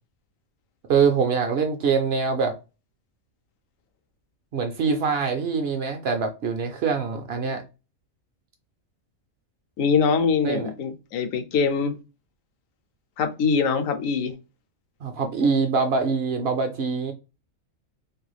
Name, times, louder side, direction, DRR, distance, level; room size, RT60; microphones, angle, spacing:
voice 1, 0.9-2.5 4.5-7.6 10.4-10.7 15.0-17.1, right 5 dB, 65° right, 0.7 m, -24 dB
voice 2, 9.8-12.0 13.2-14.3, left 5 dB, 85° left, 1.0 m, -23 dB
3.1 x 2.6 x 2.3 m
omnidirectional pair, 1.3 m